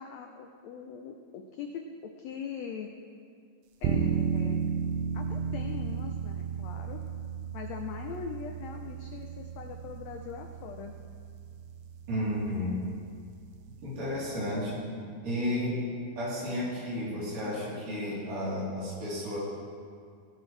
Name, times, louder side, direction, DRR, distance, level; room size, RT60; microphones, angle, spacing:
voice 1, 0.0-2.9 3.8-4.7 5.1-7.0 7.5-10.9, left 6 dB, 85° left, 4 dB, 1.5 m, -41 dB
sound 1, 3.8-14.6, right 6 dB, 90° right, 2.3 m, -35 dB
voice 2, 12.1-12.9 13.8-14.8 15.2-15.8 16.2-19.4, left 1 dB, 70° right, -8 dB, 5.1 m, -32 dB
18.0 x 9.1 x 3.3 m, 2.2 s
omnidirectional pair, 3.8 m